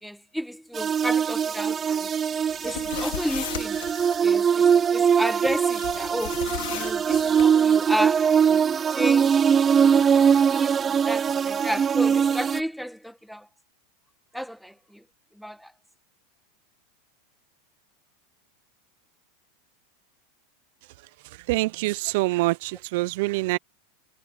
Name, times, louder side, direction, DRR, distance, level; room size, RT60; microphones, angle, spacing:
voice 1, 0.0-2.1 2.6-3.8 4.2-6.4 6.7-8.6 8.9-9.4 9.7-10.0 10.5-13.5 14.3-15.0 15.4-15.7, equal, ahead, 1.7 m, -32 dB
sound 1, 0.7-12.6, right 7 dB, 25° right, 0.6 m, -22 dB
sound 2, 2.5-4.2 5.7-7.5, left 16 dB, 75° left, 4.3 m, -36 dB
voice 2, 21.5-23.6, right 20 dB, 65° right, 0.7 m, -25 dB
hypercardioid pair, 115°, 0 cm